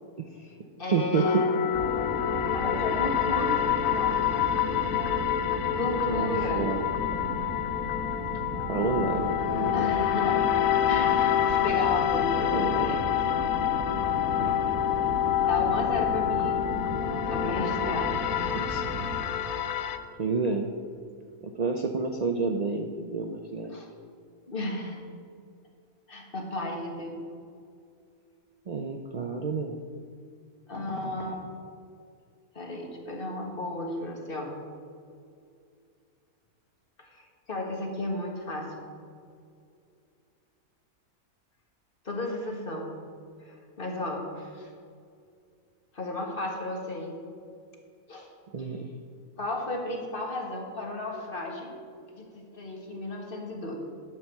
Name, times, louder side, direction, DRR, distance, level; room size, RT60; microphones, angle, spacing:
voice 1, 0.2-0.5 0.9-1.4 2.4-2.5 6.1-6.8 8.7-9.8 12.5-13.0 14.4-14.7 18.5-18.9 20.2-20.7 21.4-23.8 28.7-29.7 48.5-48.9, right 4 dB, 80° right, 3 dB, 0.3 m, -30 dB
voice 2, 0.8-1.8 2.5-3.6 3.9-4.1 5.7-6.7 9.7-13.3 15.5-16.7 17.3-18.3 23.7-23.9 24.5-25.0 26.1-27.2 30.7-31.4 32.6-34.5 37.0-38.9 42.1-42.9 43.4-44.7 45.9-47.2 48.1-48.3 48.6-48.7 49.4-51.7 52.1-53.8, left 1 dB, 40° left, 0 dB, 1.7 m, -34 dB
sound 1, 1.1-20.0, left 10 dB, 70° left, 1.0 m, -27 dB
sound 2, 1.7-19.2, equal, 85° left, 3.8 m, -35 dB
11.0 x 5.7 x 7.0 m, 2.4 s
omnidirectional pair, 1.6 m